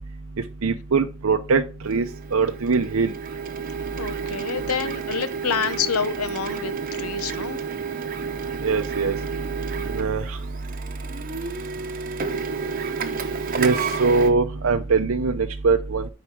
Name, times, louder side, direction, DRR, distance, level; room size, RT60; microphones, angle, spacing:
voice 1, 0.6-2.1 2.3-3.1 8.6-9.1 9.9-10.4 13.6-16.1, right 4 dB, 70° right, 0.6 m, -22 dB
Printer, 1.8-14.3, right 5 dB, 40° right, 0.9 m, -31 dB
voice 2, 4.0-7.6, left 6 dB, 80° left, 0.8 m, -28 dB
9.7 x 4.8 x 4.6 m
head